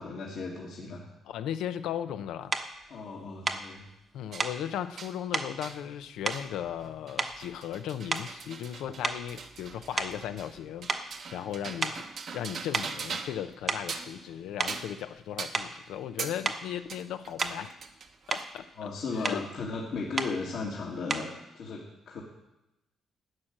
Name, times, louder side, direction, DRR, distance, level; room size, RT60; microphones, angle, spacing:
voice 1, 0.0-1.1 2.9-3.9 18.8-21.3 21.5-22.2, left 4 dB, 70° left, -3 dB, 1.9 m, -36 dB
voice 2, 1.3-2.5 4.1-12.0 12.3-17.8 18.3-18.9 19.2-19.5, left 10 dB, 85° left, 11 dB, 0.6 m, -37 dB
sound 1, 2.5-2.7 3.4-3.7 4.4-4.6 5.3-5.5 6.2-6.9 7.2-7.6 8.1-8.4 9.0-10.6 10.9-11.1 11.8-12.1 12.7-13.0 13.5-14.0 14.6-14.8 15.5-15.8 16.4-16.7 17.4-17.7 18.1-18.5 19.2-19.5 20.2-20.4 21.1-21.4, right 3 dB, 35° right, 1.0 m, -33 dB
sound 2, 4.3-4.5 5.0-5.2 5.6-5.8 6.3-6.5 6.8-13.5 13.8-14.2 14.7-15.0 15.4-15.6 16.2-16.4 16.9-18.6, right 5 dB, 60° right, 1.1 m, -41 dB
11.5 x 6.5 x 8.9 m, 0.95 s
cardioid pair, 90°, 0 cm